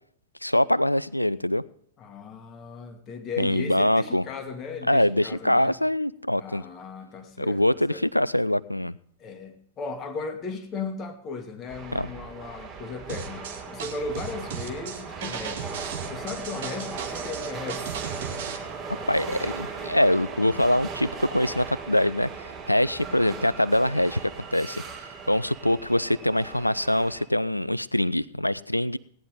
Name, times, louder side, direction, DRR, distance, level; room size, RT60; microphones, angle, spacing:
voice 1, 0.4-1.6 3.4-4.2 4.9-6.6 7.4-9.0 11.9-12.1 19.1-24.8 25.3-29.0, left 1 dB, 90° left, 19 dB, 0.4 m, -24 dB
voice 2, 2.0-5.8 6.4-8.0 9.2-15.8 16.1-18.0, left 4 dB, 25° left, 7 dB, 1.7 m, -36 dB
sound 1, 11.7-27.2, right 5 dB, 25° right, 3.9 m, -38 dB
sound 2, 13.1-18.6, right 7 dB, 55° right, 1.6 m, -36 dB
17.5 x 10.0 x 3.7 m, 0.67 s
figure-of-eight pair, 100°, 0 cm